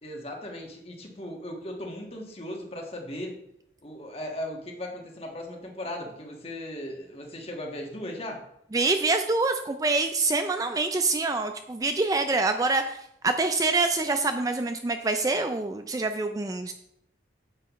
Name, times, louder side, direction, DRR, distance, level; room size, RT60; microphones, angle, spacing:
voice 1, 0.0-3.4 3.8-8.4, left 1 dB, 35° left, 1 dB, 1.5 m, -37 dB
voice 2, 8.7-13.0 13.2-16.7, right 3 dB, 20° right, 7 dB, 0.3 m, -26 dB
9.2 x 7.9 x 3.1 m, 0.77 s
head